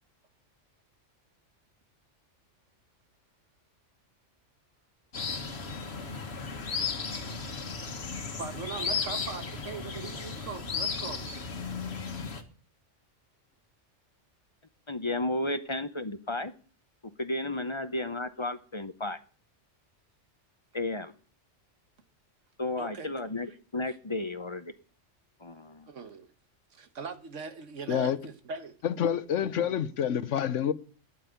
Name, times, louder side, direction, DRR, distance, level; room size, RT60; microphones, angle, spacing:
sound 1, 5.1-12.4, left 5 dB, 60° left, 1.7 m, -35 dB
voice 1, 8.4-11.3 22.8-23.1 23.5-23.6 23.9-24.0 25.9-26.3 26.7-28.8 29.6-29.9, right 5 dB, 80° right, 1.6 m, -40 dB
voice 2, 14.9-16.5 17.2-19.2 20.7-21.1 22.6-24.7 25.4-25.9, left 2 dB, 30° left, 0.7 m, -33 dB
voice 3, 28.8-30.7, left 9 dB, 85° left, 1.2 m, -27 dB
10.5 x 9.1 x 8.3 m
omnidirectional pair, 1.2 m